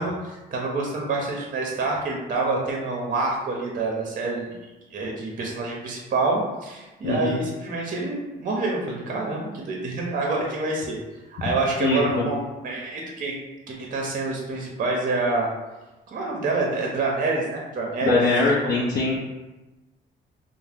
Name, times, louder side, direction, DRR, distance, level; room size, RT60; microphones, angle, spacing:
voice 1, 0.0-4.6 4.9-11.0 11.3-12.4 12.6-13.3 13.7-15.5 16.1-18.2 18.6-18.7, right 3 dB, 45° right, -1 dB, 0.6 m, -27 dB
voice 2, 7.0-7.4 11.8-12.3 18.0-19.1, left 3 dB, 55° left, -5 dB, 0.5 m, -22 dB
2.7 x 2.0 x 3.3 m, 1.1 s
cardioid pair, 90°, 20 cm